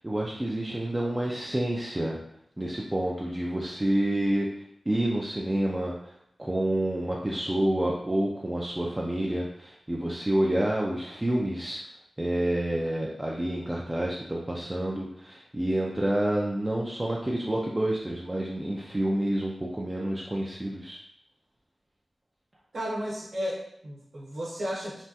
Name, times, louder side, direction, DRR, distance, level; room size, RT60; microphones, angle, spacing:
voice 1, 0.0-2.2 2.6-4.5 4.9-6.1 6.4-11.8 12.2-21.0, right 1 dB, 15° right, -3 dB, 0.3 m, -28 dB
voice 2, 22.7-25.0, equal, 65° right, -5 dB, 0.9 m, -33 dB
3.3 x 2.2 x 2.7 m, 0.75 s
wide cardioid pair, 115°, 0 cm